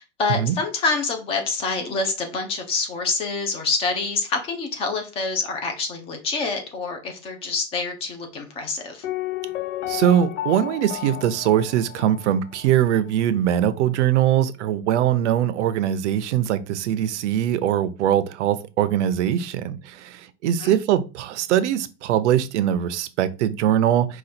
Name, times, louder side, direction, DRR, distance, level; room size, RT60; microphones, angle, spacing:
voice 1, 0.2-9.1 20.6-20.7, left 4 dB, 15° left, 0.6 m, -26 dB
Piano, 9.0-12.8 13.1-13.2, left 14 dB, 80° left, 0.7 m, -32 dB
voice 2, 9.9-24.2, right 10 dB, 75° right, 0.7 m, -22 dB
5.0 x 2.4 x 4.2 m
supercardioid pair, 170°, 35 cm